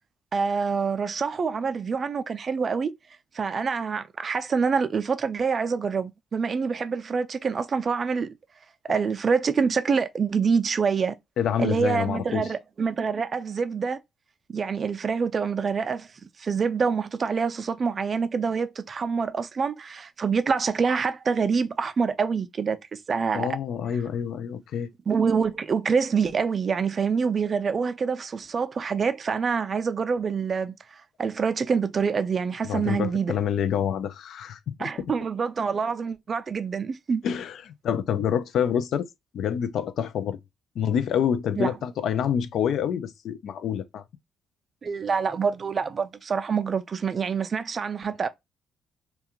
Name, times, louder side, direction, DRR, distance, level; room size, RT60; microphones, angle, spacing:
voice 1, 0.3-2.9 3.3-8.3 8.8-11.1 11.6-14.0 14.5-16.1 16.4-23.5 25.1-33.3 34.8-37.2 41.6-41.7 44.8-48.3, right 5 dB, 40° right, 0.4 m, -26 dB
voice 2, 11.4-12.5 23.3-24.9 32.6-35.1 37.2-39.1 39.3-40.4 40.8-44.0, left 8 dB, 70° left, 0.3 m, -27 dB
2.4 x 2.2 x 2.8 m
cardioid pair, 90°, 0 cm